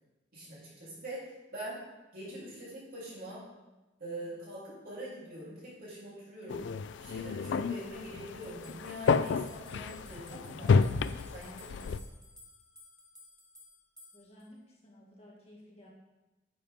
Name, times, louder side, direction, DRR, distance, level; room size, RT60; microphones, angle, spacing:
voice 1, 0.3-1.8 2.1-3.4 4.0-6.7 7.0-11.1 11.3-11.8, right 1 dB, 50° right, -8 dB, 3.4 m, -44 dB
sound 1, 6.5-12.0, left 5 dB, 65° left, 0.3 m, -30 dB
sound 2, 8.4-14.5, left 2 dB, 5° left, 1.3 m, -56 dB
voice 2, 14.1-15.9, left 1 dB, 35° left, -3 dB, 1.7 m, -55 dB
9.4 x 7.1 x 3.6 m, 1.1 s
head